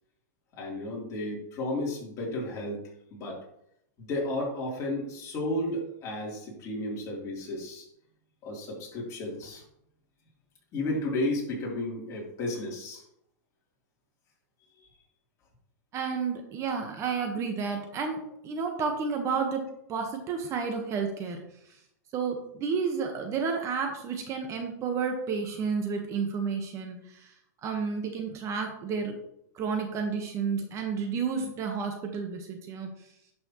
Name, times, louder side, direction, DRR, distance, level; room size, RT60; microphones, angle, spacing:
voice 1, 0.5-2.8 3.1-3.4 4.0-7.9 8.4-9.6 10.7-13.0 14.8-14.9, left 1 dB, 30° left, -3 dB, 3.4 m, -33 dB
voice 2, 15.9-18.2 18.4-19.6 19.9-21.4 22.1-27.3 27.6-29.1 29.5-32.9, right 5 dB, 30° right, 4 dB, 1.3 m, -31 dB
11.0 x 6.2 x 3.1 m, 0.75 s
hypercardioid pair, 135°, 10 cm